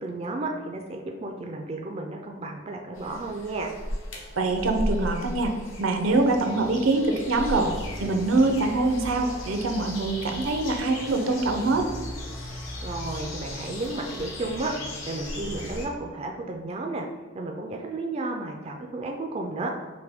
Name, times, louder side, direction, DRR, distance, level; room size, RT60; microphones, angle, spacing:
voice 1, 0.0-3.7 12.8-14.7 15.0-17.1 17.3-19.7, right 2 dB, 30° right, 2 dB, 0.3 m, -33 dB
sound 1, 2.9-15.9, left 1 dB, 75° left, 1.1 m, -36 dB
voice 2, 4.4-5.5 5.8-7.7 8.0-11.9, right 2 dB, 80° right, 4 dB, 0.6 m, -24 dB
5.6 x 2.2 x 3.4 m, 1.4 s
head